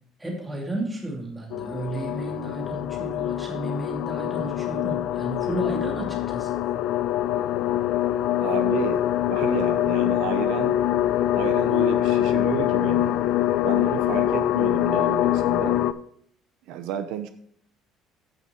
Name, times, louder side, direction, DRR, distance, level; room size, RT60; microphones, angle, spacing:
voice 1, 0.2-6.5, right 1 dB, 10° right, -2 dB, 2.7 m, -33 dB
sound 1, 1.5-15.9, left 12 dB, 60° left, 0.4 m, -24 dB
voice 2, 8.4-9.0 9.3-10.8 11.3-13.2 13.6-15.8 16.7-17.3, right 10 dB, 75° right, 9 dB, 0.8 m, -31 dB
15.0 x 5.9 x 3.1 m, 0.65 s
cardioid pair, 170°, 0 cm